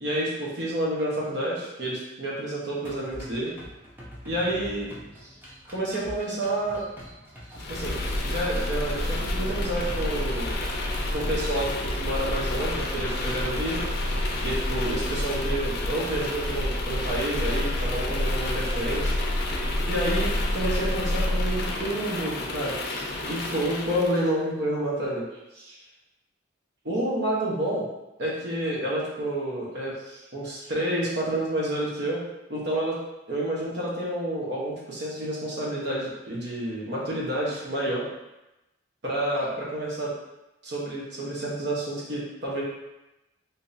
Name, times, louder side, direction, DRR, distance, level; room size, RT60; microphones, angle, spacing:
voice 1, 0.0-3.5 4.2-4.9 5.2-5.3 5.7-6.8 7.5-7.9 8.2-10.6 11.1-13.8 14.4-19.2 19.9-25.3 25.5-25.8 26.8-27.9 28.2-32.2 32.5-33.0 33.3-38.1 39.0-40.1 40.6-42.6, right 1 dB, 65° right, -5 dB, 1.0 m, -29 dB
sound 1, 2.8-14.8, equal, 10° right, 0.7 m, -45 dB
sound 2, 7.6-24.3, left 1 dB, 55° left, 0.5 m, -28 dB
3.6 x 2.7 x 2.6 m, 0.98 s
head